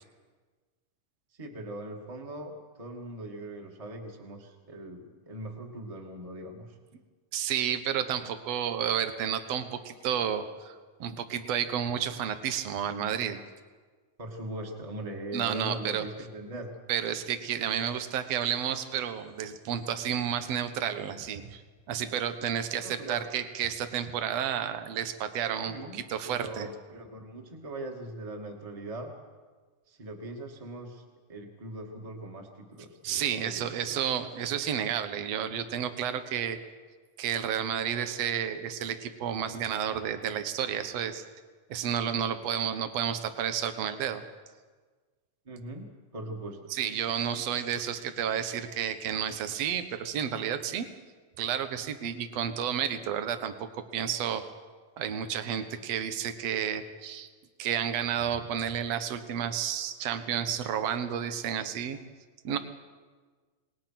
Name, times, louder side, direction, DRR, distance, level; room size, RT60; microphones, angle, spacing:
voice 1, 1.4-6.7 14.2-16.7 22.8-23.3 25.6-29.1 29.9-31.0 31.3-33.9 45.4-46.6, right 1 dB, 10° right, 2 dB, 1.9 m, -41 dB
voice 2, 7.3-13.4 15.3-16.0 16.9-21.6 21.9-26.7 33.0-36.6 37.2-41.2 41.7-44.2 46.7-50.9 51.4-54.4 55.0-57.3 57.6-62.0 62.4-62.6, right 9 dB, 60° right, 9 dB, 2.1 m, -31 dB
27.0 x 20.0 x 6.0 m, 1.4 s
omnidirectional pair, 4.0 m